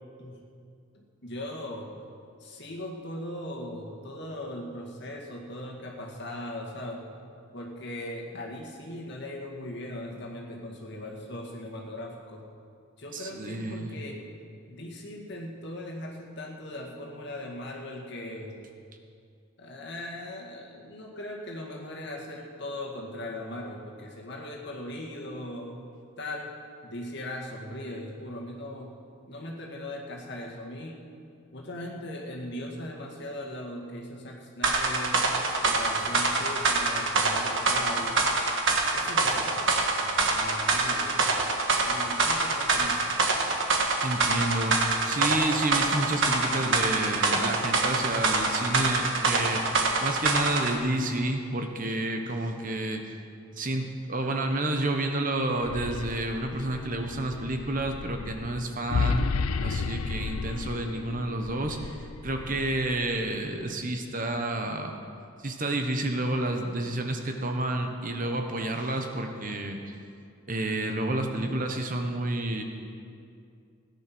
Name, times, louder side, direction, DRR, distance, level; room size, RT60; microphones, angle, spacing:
voice 1, 0.9-1.9 2.4-7.1 7.5-12.5 13.0-14.2 14.7-18.6 19.6-25.8 26.2-26.6 26.8-28.9 29.3-31.0 31.5-35.2 35.7-38.2 38.9-41.4 41.8-43.4 71.1-71.5, left 1 dB, 50° left, -1 dB, 2.0 m, -39 dB
voice 2, 13.1-13.9 44.0-49.6 50.0-53.0 53.6-59.3 59.6-64.9 65.4-69.9 70.5-72.6, right 2 dB, 40° right, 4 dB, 1.1 m, -30 dB
sound 1, 34.6-50.8, right 3 dB, 60° right, 1.6 m, -25 dB
sound 2, 55.5-63.6, left 4 dB, 85° left, 0.5 m, -33 dB
17.0 x 10.0 x 6.1 m, 2.4 s
head